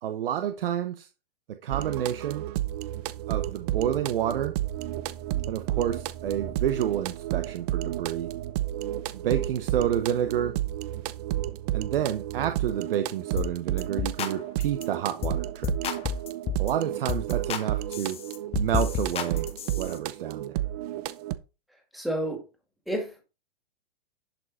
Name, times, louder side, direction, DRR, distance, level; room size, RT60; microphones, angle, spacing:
voice 1, 0.0-1.1 1.5-2.4 3.3-4.5 5.5-8.3 9.1-10.6 11.7-15.7 16.6-18.2 18.6-19.5 19.8-20.5, right 10 dB, 65° right, 1.0 m, -29 dB
sound 1, 1.7-21.4, right 14 dB, 40° right, 0.7 m, -32 dB
sound 2, 13.4-13.5 13.8-14.3 14.6-14.8 15.2-15.4 15.6-16.7 17.1-17.6 17.9-19.9, left 7 dB, 20° left, 1.1 m, -31 dB
voice 2, 21.9-22.4 22.9-23.2, right 1 dB, ahead, 2.3 m, -30 dB
11.0 x 5.3 x 4.2 m
hypercardioid pair, 135°, 30 cm